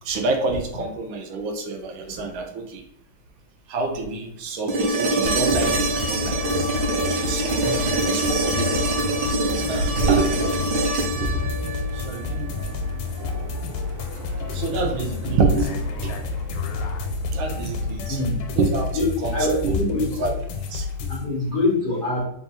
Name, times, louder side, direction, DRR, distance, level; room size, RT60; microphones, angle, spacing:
voice 1, 0.0-2.8 3.7-6.7 7.0-7.6 8.0-8.8 9.5-10.7 11.0-11.6 11.9-12.6 13.2-13.6 14.5-16.3 17.3-18.2 18.5-18.9 19.2-19.4 19.6-19.8 20.2-20.3 20.7-21.4, right 3 dB, 75° right, 4 dB, 1.4 m, -27 dB
sound 1, 4.7-12.7 14.9-15.0, right 2 dB, 60° right, 1.3 m, -25 dB
sound 2, 5.2-21.2, left 5 dB, 80° left, 1.5 m, -31 dB
sound 3, 5.8-18.0, equal, 40° right, 0.9 m, -37 dB
voice 2, 19.3-20.2 21.1-22.2, left 2 dB, 60° left, -5 dB, 0.5 m, -24 dB
3.7 x 2.4 x 4.1 m, 0.69 s
omnidirectional pair, 2.3 m